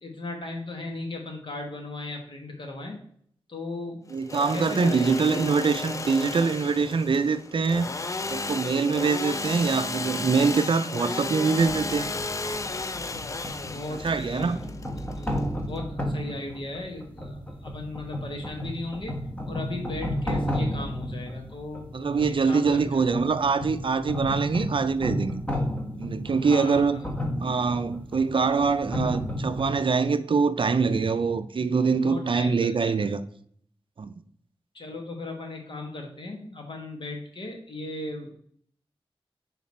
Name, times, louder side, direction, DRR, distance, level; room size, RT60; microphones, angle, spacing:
voice 1, 0.0-3.0 3.5-4.0 4.5-5.5 13.6-14.8 15.1-15.3 15.7-19.2 19.5-23.0 26.4-27.1 32.0-32.9 34.7-38.3, left 2 dB, 55° left, 1.5 m, -37 dB
Engine / Sawing, 4.1-15.8, left 3 dB, 30° left, 0.4 m, -34 dB
voice 2, 4.1-7.9 8.3-12.1 14.0-14.6 21.9-25.4 26.0-27.0 27.4-33.2 34.0-34.1, right 5 dB, 55° right, 0.4 m, -24 dB
sound 1, 11.6-29.7, equal, 15° left, 1.2 m, -33 dB
5.7 x 4.0 x 4.2 m
wide cardioid pair, 105°, 10 cm